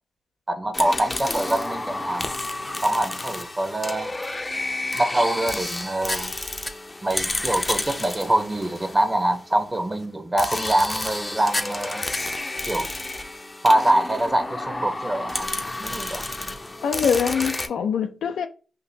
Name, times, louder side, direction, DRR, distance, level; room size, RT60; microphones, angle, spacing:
voice 1, 0.5-2.3 2.8-4.2 4.9-6.3 7.0-12.1 12.7-12.9 13.6-15.5 15.8-16.3, right 1 dB, 30° right, 1.0 m, -24 dB
sound 1, 0.7-9.6 10.4-17.7, left 2 dB, 30° left, 0.6 m, -30 dB
voice 2, 16.8-18.5, left 7 dB, 85° left, 0.4 m, -23 dB
3.7 x 2.6 x 2.8 m
supercardioid pair, 45°, 0 cm